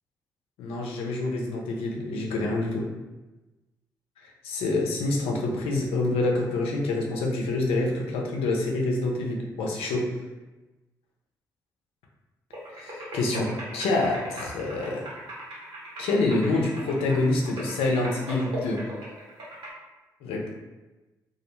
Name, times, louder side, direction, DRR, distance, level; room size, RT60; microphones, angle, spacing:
voice 1, 0.6-2.9 4.4-10.1 12.7-15.1 16.0-18.8 20.2-20.5, left 2 dB, 70° left, -1 dB, 0.5 m, -27 dB
sound 1, 12.5-19.7, equal, 55° right, 1.0 m, -39 dB
2.4 x 2.1 x 3.0 m, 1.1 s
hypercardioid pair, 40°, 10 cm